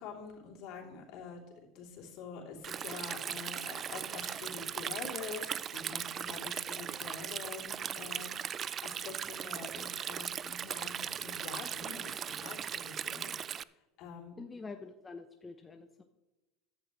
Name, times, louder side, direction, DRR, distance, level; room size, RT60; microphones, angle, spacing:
voice 1, 0.0-1.4 1.7-13.3 14.0-14.4, left 5 dB, 55° left, -1 dB, 3.1 m, -46 dB
Stream, 2.6-13.6, right 8 dB, 35° right, 0.4 m, -38 dB
voice 2, 14.4-16.0, left 4 dB, 20° left, 6 dB, 0.8 m, -46 dB
14.5 x 10.5 x 3.2 m, 1.1 s
hypercardioid pair, 90°, 0 cm